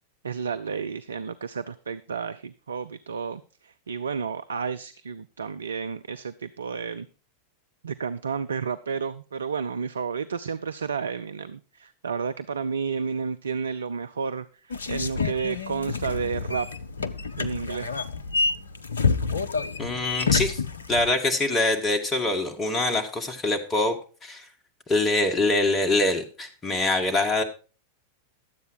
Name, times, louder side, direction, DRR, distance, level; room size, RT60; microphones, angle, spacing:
voice 1, 0.2-7.1 7.8-16.7 17.4-17.9, right 6 dB, 70° right, 12 dB, 0.4 m, -31 dB
sound 1, 14.7-21.1, left 4 dB, 70° left, 0.6 m, -28 dB
voice 2, 19.8-20.6 20.9-24.0 24.2-24.5 24.9-27.4, left 2 dB, 20° left, 4 dB, 1.9 m, -24 dB
11.5 x 8.0 x 4.7 m, 0.35 s
figure-of-eight pair, 90°, 0 cm